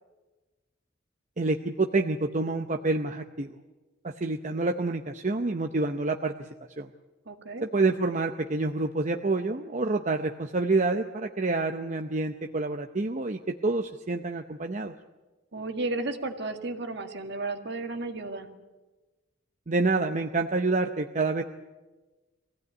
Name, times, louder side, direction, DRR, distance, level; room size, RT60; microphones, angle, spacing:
voice 1, 1.4-3.5 4.0-6.5 6.8-6.9 7.6-14.9 19.7-21.4, right 3 dB, 40° right, 5 dB, 0.7 m, -28 dB
voice 2, 7.3-7.7 15.5-18.5, right 2 dB, 60° right, 5 dB, 2.0 m, -33 dB
23.5 x 16.0 x 9.4 m, 1.2 s
head